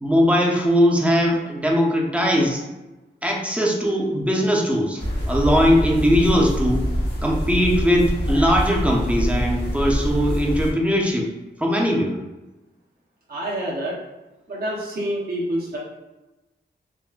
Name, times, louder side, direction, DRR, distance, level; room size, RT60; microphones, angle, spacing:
voice 1, 0.0-2.6 3.2-6.9 7.2-11.3 11.6-12.2, equal, 5° right, -2 dB, 0.4 m, -20 dB
sound 1, 5.0-10.7, equal, 60° left, 0.9 m, -25 dB
voice 2, 13.3-14.0 14.5-15.8, right 1 dB, 55° right, -4 dB, 0.6 m, -27 dB
3.5 x 2.1 x 2.4 m, 1.1 s
wide cardioid pair, 120°, 19 cm